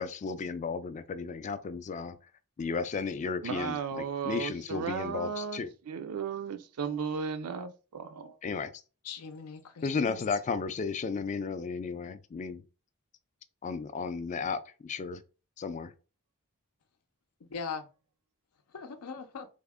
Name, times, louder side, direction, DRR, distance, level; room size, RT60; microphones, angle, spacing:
voice 1, 0.0-2.2 2.6-5.7 8.4-8.7 9.8-12.6 13.6-15.2 15.6-15.9, left 5 dB, 35° left, 0.3 m, -34 dB
voice 2, 3.4-8.4, right 6 dB, 80° right, 0.4 m, -35 dB
voice 3, 9.0-10.2 17.5-17.8 18.7-19.5, left 5 dB, 85° left, 0.6 m, -40 dB
3.4 x 2.1 x 3.5 m
head